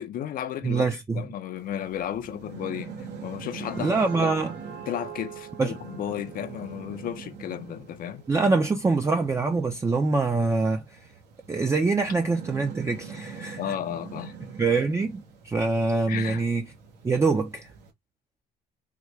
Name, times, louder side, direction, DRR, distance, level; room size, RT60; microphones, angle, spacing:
voice 1, 0.0-0.9 1.1-4.3 4.9-8.2 13.6-14.4 16.1-16.4, left 10 dB, 60° left, 0.6 m, -34 dB
voice 2, 0.6-1.3 3.8-4.5 5.6-5.7 8.3-11.0 11.5-13.7 14.6-16.7 17.0-17.7, right 3 dB, 15° right, 0.4 m, -24 dB
sound 1, 1.6-17.9, right 5 dB, 80° right, 1.0 m, -44 dB
sound 2, 3.2-8.7, right 8 dB, 65° right, 1.4 m, -44 dB
3.7 x 2.2 x 3.1 m
cardioid pair, 110°, 17 cm